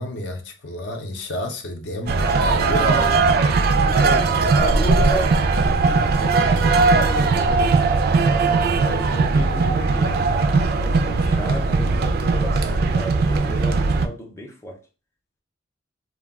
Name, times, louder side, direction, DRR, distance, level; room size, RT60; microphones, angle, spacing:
voice 1, 0.0-2.9, left 1 dB, 70° left, 0.6 m, -30 dB
sound 1, 2.1-14.1, right 4 dB, 60° right, 0.3 m, -19 dB
voice 2, 2.6-3.2 3.9-8.0 8.7-10.3 10.7-14.8, equal, 15° left, 0.5 m, -34 dB
2.2 x 2.2 x 3.4 m
head